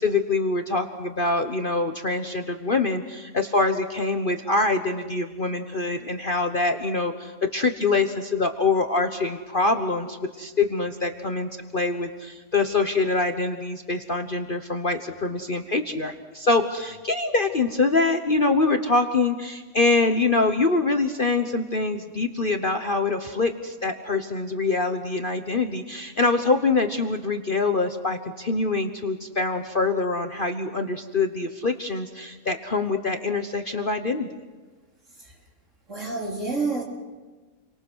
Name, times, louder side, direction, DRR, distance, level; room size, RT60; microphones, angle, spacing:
voice 1, 0.0-34.3, left 3 dB, 35° left, 6 dB, 1.1 m, -24 dB
voice 2, 35.9-36.8, right 3 dB, 50° right, -1 dB, 4.2 m, -28 dB
30.0 x 24.0 x 6.3 m, 1.3 s
omnidirectional pair, 1.7 m